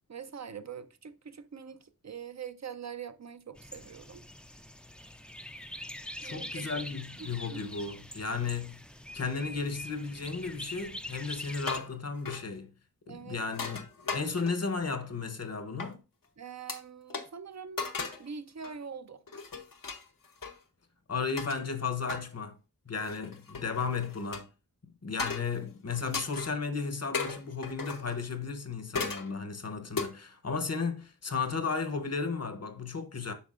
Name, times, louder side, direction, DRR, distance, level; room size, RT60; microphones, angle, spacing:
voice 1, 0.1-4.2 6.2-6.8 7.2-7.7 13.1-13.4 16.4-17.9 18.2-19.2, right 6 dB, 55° right, 0.5 m, -44 dB
sound 1, 3.6-11.8, left 1 dB, 5° left, 0.4 m, -44 dB
voice 2, 6.2-8.8 9.1-12.7 13.1-16.0 21.1-22.6 22.9-24.5 24.8-33.3, left 4 dB, 50° left, 0.8 m, -34 dB
sound 2, 11.5-12.0 12.3-12.5 13.5-14.7 15.8-15.9 16.7-16.8 17.1-17.2 17.8-18.3 18.6-18.8 19.3-20.5 21.4-21.6 22.1-22.2 23.0-24.4 25.2-25.6 25.9-26.5 27.1-28.2 28.9-29.3 30.0-30.1, left 4 dB, 85° left, 0.9 m, -36 dB
8.4 x 5.7 x 2.5 m
wide cardioid pair, 50°, 33 cm